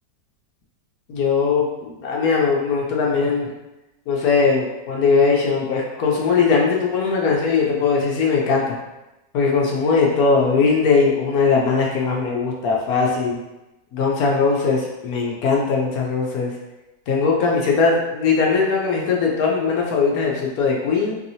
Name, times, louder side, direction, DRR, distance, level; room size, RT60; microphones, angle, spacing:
voice 1, 1.1-3.5 4.1-8.8 9.3-13.4 13.9-16.5 17.1-21.2, left 4 dB, 65° left, -2 dB, 1.0 m, -20 dB
4.7 x 2.8 x 2.7 m, 1.0 s
omnidirectional pair, 1.9 m